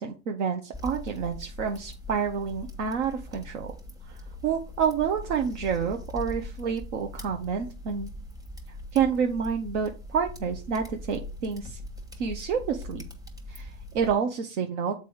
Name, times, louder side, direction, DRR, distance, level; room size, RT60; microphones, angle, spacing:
voice 1, 0.0-3.7 4.1-8.1 8.9-11.8 12.2-13.1 13.5-14.9, right 6 dB, 65° right, 4 dB, 1.1 m, -29 dB
sound 1, 0.7-14.1, left 1 dB, 10° right, 1.4 m, -41 dB
6.9 x 4.7 x 4.6 m, 0.32 s
supercardioid pair, 125°, 38 cm